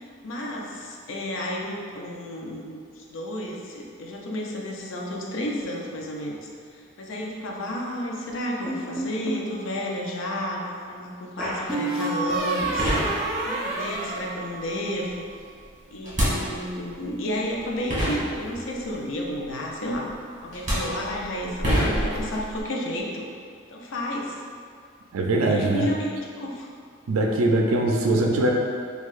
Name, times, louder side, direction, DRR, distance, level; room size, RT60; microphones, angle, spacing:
voice 1, 0.2-15.2 15.9-20.1 20.4-23.3 23.7-24.4 25.5-26.7, left 1 dB, 70° left, -1 dB, 0.5 m, -32 dB
sound 1, 8.7-9.5 11.4-15.0, right 2 dB, 5° right, 0.4 m, -29 dB
sound 2, 12.8-13.7 16.0-16.9 17.6-17.7 17.9-18.8 19.9-20.1 20.5-22.6, equal, 35° right, 1.1 m, -26 dB
voice 2, 25.1-25.9 27.1-28.5, right 2 dB, 90° right, 0 dB, 0.4 m, -21 dB
4.4 x 2.3 x 2.4 m, 2.1 s
head